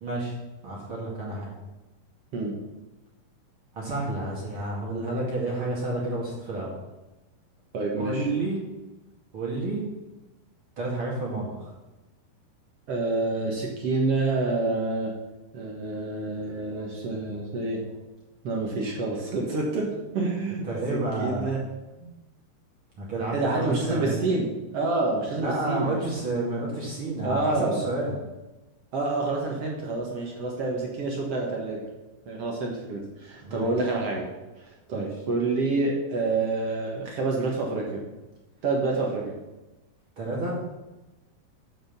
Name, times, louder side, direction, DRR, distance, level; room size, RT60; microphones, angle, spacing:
voice 1, 0.0-0.4 0.6-1.5 3.7-6.7 8.0-8.6 9.3-9.8 10.8-11.7 20.6-21.5 22.0-22.1 23.0-24.2 25.4-28.1 33.4-33.7 34.9-35.1 40.2-40.6, right 2 dB, 40° right, -4 dB, 2.3 m, -30 dB
voice 2, 7.7-8.3 12.9-15.1 15.5-18.0 18.4-20.7 20.9-21.6 23.3-24.5 24.7-26.0 27.2-27.9 28.9-31.9 32.2-34.3 34.6-38.0 38.6-39.3, right 3 dB, 60° right, -1 dB, 1.7 m, -28 dB
7.5 x 7.0 x 6.7 m, 1.1 s
omnidirectional pair, 4.5 m